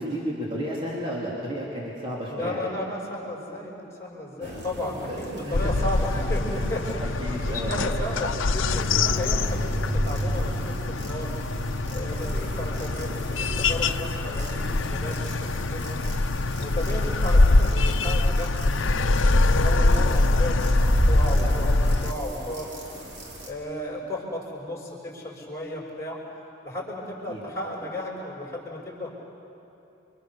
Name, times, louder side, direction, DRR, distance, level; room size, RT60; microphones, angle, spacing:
voice 1, 0.0-2.7 4.4-4.6 5.1-5.7 7.0-7.9 27.3-27.4, equal, 25° right, -5 dB, 3.5 m, -32 dB
voice 2, 2.3-7.0 7.5-11.3 11.9-16.0 16.6-22.7 23.5-26.2 26.6-29.1, left 1 dB, 15° left, -2 dB, 5.6 m, -34 dB
sound 1, 4.4-23.5, equal, 65° right, 3.7 m, -32 dB
sound 2, 5.5-22.1, left 2 dB, 90° left, 0.8 m, -24 dB
30.0 x 25.0 x 6.9 m, 2.9 s
head